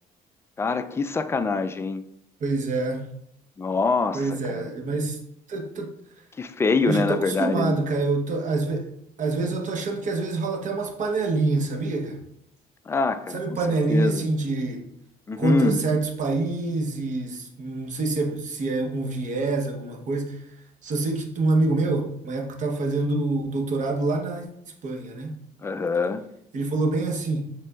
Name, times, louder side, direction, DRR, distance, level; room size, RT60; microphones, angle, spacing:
voice 1, 0.6-2.0 3.6-4.7 6.4-7.8 12.9-14.3 15.3-15.8 25.6-26.2, left 4 dB, 15° left, 10 dB, 0.3 m, -25 dB
voice 2, 2.4-3.1 4.1-5.2 5.5-5.9 6.9-8.9 9.2-12.2 13.3-14.9 15.4-20.4 20.8-24.5 24.8-25.4 26.5-27.4, right 3 dB, 50° right, 3 dB, 0.9 m, -26 dB
6.4 x 3.3 x 2.3 m, 0.75 s
cardioid pair, 110°, 17 cm